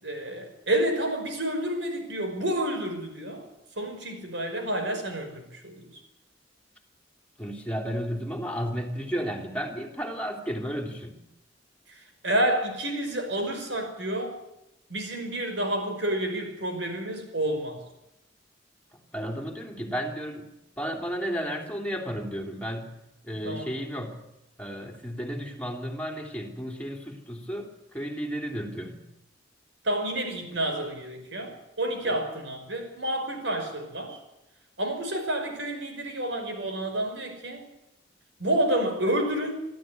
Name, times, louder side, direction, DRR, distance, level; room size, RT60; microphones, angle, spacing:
voice 1, 0.0-3.4 3.8-6.0 12.0-14.4 14.9-17.8 23.4-23.7 29.8-34.2 34.8-37.7 38.4-39.6, right 1 dB, 70° right, 5 dB, 5.6 m, -29 dB
voice 2, 7.4-11.2 18.9-20.5 20.8-22.9 23.2-24.2 24.6-29.0 32.1-32.2, equal, 10° left, 4 dB, 3.3 m, -33 dB
25.0 x 13.0 x 9.6 m, 0.88 s
head